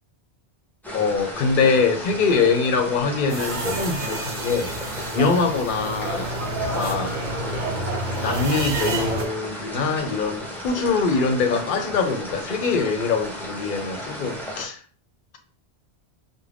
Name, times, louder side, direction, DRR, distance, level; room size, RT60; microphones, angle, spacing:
sound 1, 0.8-14.7, left 1 dB, ahead, 0.5 m, -34 dB
voice 1, 0.9-4.7 5.1-7.2 8.1-14.8, left 4 dB, 60° left, 5 dB, 0.6 m, -23 dB
sound 2, 3.3-9.3, right 2 dB, 55° right, 0.6 m, -29 dB
2.4 x 2.0 x 3.3 m, 0.39 s
omnidirectional pair, 1.1 m